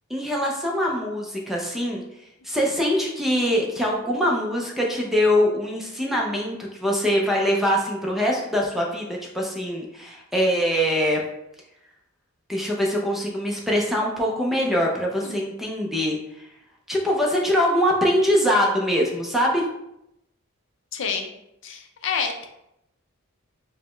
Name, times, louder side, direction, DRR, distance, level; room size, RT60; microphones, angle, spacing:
voice 1, 0.1-2.0 2.4-11.2 12.5-16.2 16.9-19.6, equal, ahead, -2 dB, 0.5 m, -23 dB
voice 2, 20.9-21.3 21.6-22.5, left 6 dB, 60° left, 4 dB, 0.4 m, -28 dB
4.8 x 2.1 x 3.1 m, 0.83 s
head